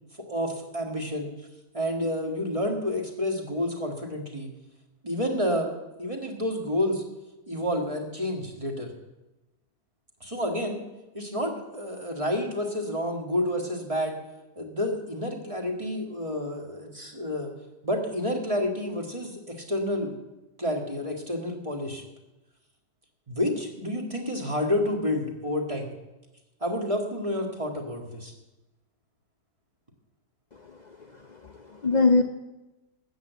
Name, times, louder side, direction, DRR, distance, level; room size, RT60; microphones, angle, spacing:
voice 1, 0.3-1.3 1.7-4.5 5.0-5.7 6.0-7.0 7.5-8.9 10.2-10.8 11.1-14.2 14.6-17.5 17.8-20.1 20.6-22.0 23.3-25.9 26.6-28.3, left 1 dB, 20° right, 2 dB, 1.9 m, -29 dB
voice 2, 30.6-32.2, left 3 dB, 65° left, 5 dB, 0.4 m, -25 dB
13.0 x 7.9 x 8.2 m, 1.0 s
omnidirectional pair, 1.8 m